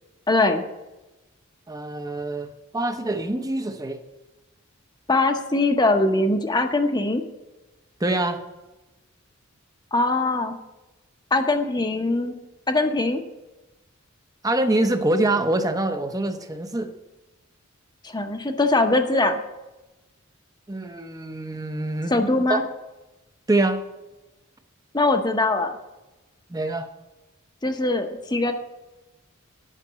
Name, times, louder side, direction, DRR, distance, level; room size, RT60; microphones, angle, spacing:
voice 1, 0.3-0.6 5.1-7.2 9.9-10.5 11.3-12.4 12.7-13.2 18.0-19.4 22.1-22.6 24.9-25.7 27.6-28.5, left 2 dB, 20° left, 6 dB, 0.9 m, -21 dB
voice 2, 1.7-4.0 8.0-8.4 14.4-16.9 20.7-22.2 22.5-22.6 23.5-23.8 26.5-26.9, right 2 dB, 20° right, 7 dB, 0.8 m, -25 dB
10.0 x 5.9 x 8.0 m, 1.0 s
head